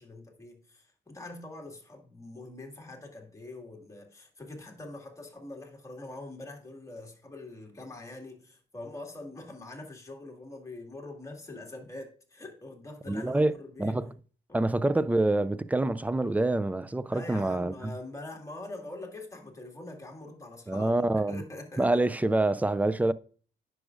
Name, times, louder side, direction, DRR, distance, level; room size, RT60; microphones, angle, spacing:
voice 1, 0.0-14.0 14.5-14.6 17.1-21.0 21.3-22.0, left 2 dB, 15° left, 2.0 m, -44 dB
voice 2, 13.1-13.5 13.8-14.1 14.5-17.7 20.7-21.4 21.8-23.1, right 2 dB, 10° right, 0.3 m, -26 dB
9.7 x 6.2 x 2.5 m
cardioid pair, 90°, 20 cm